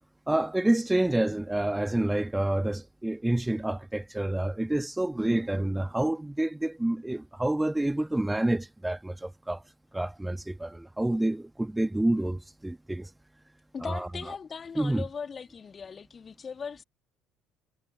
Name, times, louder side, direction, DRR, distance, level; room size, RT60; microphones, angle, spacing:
voice 1, 0.3-9.6 9.9-13.1 13.8-14.1 14.8-15.0, right 1 dB, 10° right, 1.7 m, -28 dB
voice 2, 13.7-16.8, left 6 dB, 35° left, 3.3 m, -39 dB
figure-of-eight pair, 55°, 0 cm